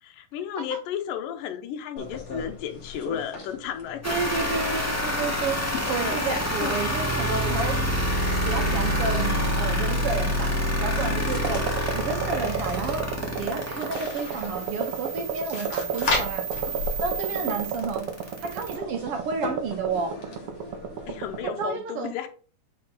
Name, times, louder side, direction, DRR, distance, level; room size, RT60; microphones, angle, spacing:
voice 1, 0.0-4.7 5.6-6.8 11.6-11.7 17.3-17.7 21.1-22.3, left 9 dB, 75° left, 2.5 m, -34 dB
sound 1, 2.0-21.4, left 3 dB, 50° left, 2.8 m, -38 dB
sound 2, 4.0-18.8, equal, 10° left, 0.8 m, -28 dB
voice 2, 4.0-5.6 5.9-7.8 8.4-13.0 13.4-16.5 17.0-18.1 18.4-20.2 21.6-22.1, right 5 dB, 65° right, 1.5 m, -31 dB
sound 3, 11.4-21.7, right 6 dB, 85° right, 1.3 m, -34 dB
10.0 x 3.9 x 4.0 m
omnidirectional pair, 4.0 m